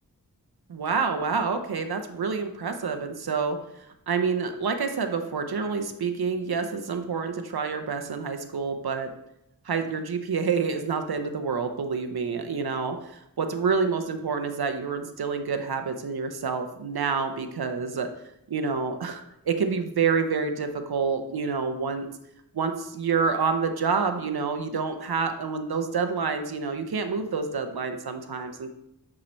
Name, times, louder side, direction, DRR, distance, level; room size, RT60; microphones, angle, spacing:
voice 1, 0.7-9.1 9.6-18.1 18.5-22.1 22.5-28.7, right 5 dB, 90° right, 7 dB, 0.7 m, -28 dB
8.6 x 3.1 x 4.3 m, 0.80 s
wide cardioid pair, 55°, 36 cm